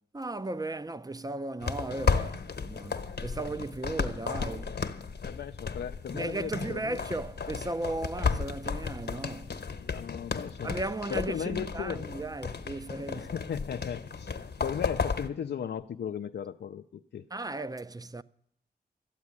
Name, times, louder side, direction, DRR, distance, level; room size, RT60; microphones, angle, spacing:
voice 1, 0.1-4.8 6.1-9.5 10.6-13.3 17.3-18.2, right 2 dB, 20° right, 0.5 m, -36 dB
sound 1, 1.6-15.3, left 5 dB, 70° left, 1.0 m, -34 dB
voice 2, 5.2-7.0 8.1-8.3 9.8-10.7 11.1-12.1 13.1-14.3 14.6-17.3, left 8 dB, 90° left, 0.5 m, -36 dB
13.5 x 8.4 x 9.6 m
wide cardioid pair, 80°, 17 cm